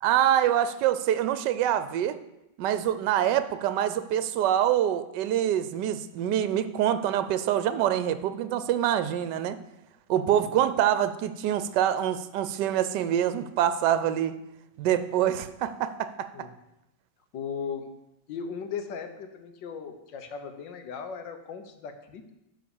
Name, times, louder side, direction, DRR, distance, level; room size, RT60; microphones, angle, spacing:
voice 1, 0.0-2.2 2.6-9.6 10.1-14.3 14.8-16.3, right 11 dB, 75° right, 12 dB, 1.2 m, -25 dB
voice 2, 17.3-17.9 18.3-22.3, left 6 dB, 80° left, 7 dB, 1.6 m, -37 dB
11.5 x 4.0 x 7.0 m, 0.89 s
omnidirectional pair, 2.0 m